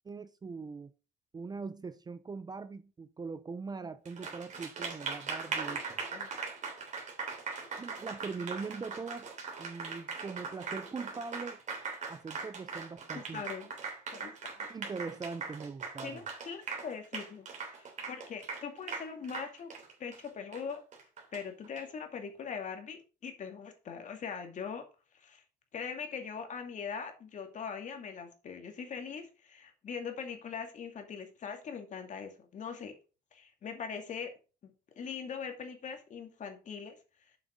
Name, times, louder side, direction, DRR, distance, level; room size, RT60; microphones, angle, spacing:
voice 1, 0.0-0.9 1.3-6.0 7.8-9.3 9.6-11.6 12.1-13.4 14.7-16.2, right 4 dB, 25° right, 0.6 m, -41 dB
Applause, 4.1-21.8, right 5 dB, 45° right, 3.1 m, -40 dB
voice 2, 13.1-13.7 14.1-14.7 16.0-19.7 20.0-20.8 21.3-24.8 25.1-25.4 25.7-32.9 33.3-34.3 34.6-34.7 35.0-37.0, left 6 dB, 45° left, 2.4 m, -41 dB
7.4 x 5.9 x 5.2 m
cardioid pair, 110°, 17 cm